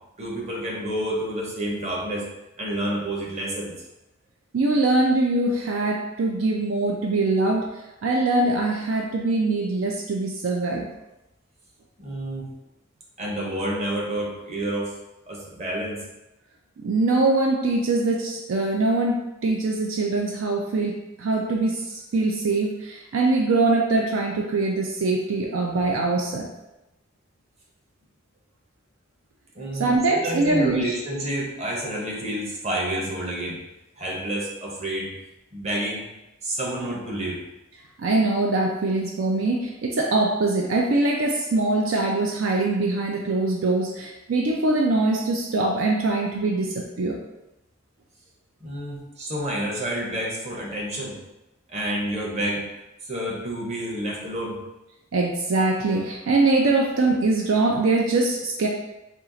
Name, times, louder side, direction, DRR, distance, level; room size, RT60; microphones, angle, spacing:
voice 1, 0.2-2.3 2.6-3.7 12.0-12.5 13.2-14.9 15.3-16.0 29.5-33.6 34.0-35.1 35.5-36.0 36.4-37.4 48.6-51.2 51.7-52.6 53.0-54.6, right 1 dB, 35° right, -3 dB, 1.0 m, -29 dB
voice 2, 4.5-7.7 8.0-10.9 16.8-26.5 29.8-30.9 38.0-47.2 55.1-58.7, right 2 dB, 70° right, 1 dB, 0.4 m, -23 dB
4.4 x 2.4 x 3.9 m, 0.96 s
head